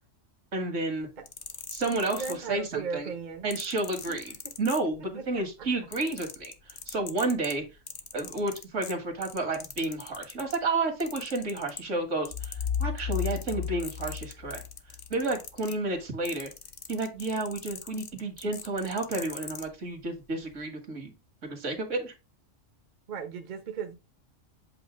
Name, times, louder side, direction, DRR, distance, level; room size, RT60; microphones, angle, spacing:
voice 1, 0.5-1.1 1.7-3.1 3.4-7.6 8.1-14.6 15.1-16.5 16.9-21.1 21.4-22.1, right 2 dB, 75° right, 1.9 m, -31 dB
sound 1, 1.1-2.8 3.5-5.3 5.6-10.6 11.0-12.0 12.3-19.7 20.4-20.6, left 6 dB, 45° left, 0.8 m, -42 dB
voice 2, 2.1-3.5 4.1-4.2 4.4-4.5 5.1-5.2 23.1-23.9, right 6 dB, 40° right, 0.9 m, -36 dB
sound 2, 12.3-15.1, left 7 dB, 85° left, 1.6 m, -33 dB
7.8 x 2.7 x 5.0 m
omnidirectional pair, 1.3 m